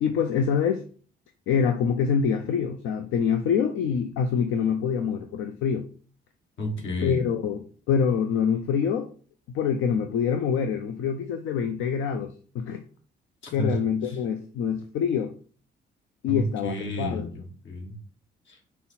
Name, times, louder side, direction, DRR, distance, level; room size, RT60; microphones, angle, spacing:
voice 1, 0.0-0.8 1.5-5.9 7.0-9.1 9.5-12.8 13.5-15.3 16.2-17.3, left 7 dB, 85° left, 0.5 m, -25 dB
voice 2, 6.6-7.2 13.4-13.8 14.0-14.2 16.3-17.9 18.5-18.6, left 1 dB, 70° left, 1.4 m, -31 dB
5.6 x 2.0 x 4.1 m
cardioid pair, 90°, 20 cm